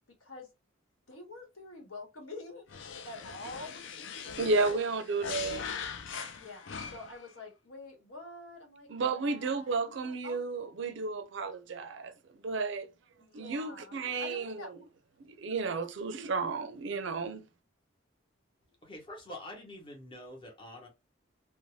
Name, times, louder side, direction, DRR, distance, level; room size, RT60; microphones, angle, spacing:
voice 1, 1.1-2.7 3.0-3.8 4.4-4.9 6.3-10.4 13.2-15.5, left 2 dB, 80° left, 1.2 m, -47 dB
sound 1, 2.7-7.3, left 6 dB, 65° left, 0.4 m, -41 dB
voice 2, 4.4-5.6 8.9-12.1 12.4-12.9 13.3-14.7 15.2-17.5, right 3 dB, 65° right, 0.4 m, -32 dB
voice 3, 18.8-20.9, left 1 dB, 25° left, 0.9 m, -46 dB
2.6 x 2.1 x 3.1 m
head